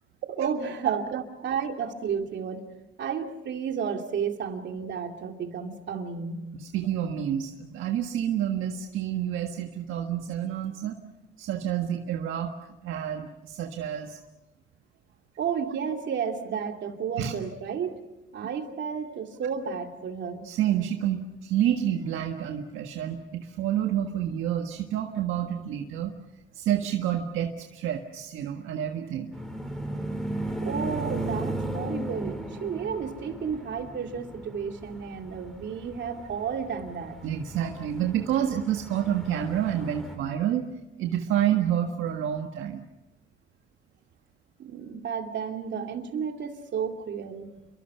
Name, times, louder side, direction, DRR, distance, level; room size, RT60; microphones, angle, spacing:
voice 1, 0.4-2.7 3.0-6.5 15.4-18.0 18.3-20.4 30.6-37.2 44.6-47.5, right 7 dB, 65° right, 4 dB, 2.7 m, -32 dB
voice 2, 6.6-11.0 11.4-12.5 12.8-14.2 17.2-17.3 20.4-26.1 26.5-29.3 37.2-40.7 41.0-42.8, right 10 dB, 90° right, 3 dB, 1.6 m, -28 dB
sound 1, 29.3-40.2, right 1 dB, ahead, 4.5 m, -36 dB
28.5 x 23.5 x 5.7 m, 0.95 s
cardioid pair, 90°, 20 cm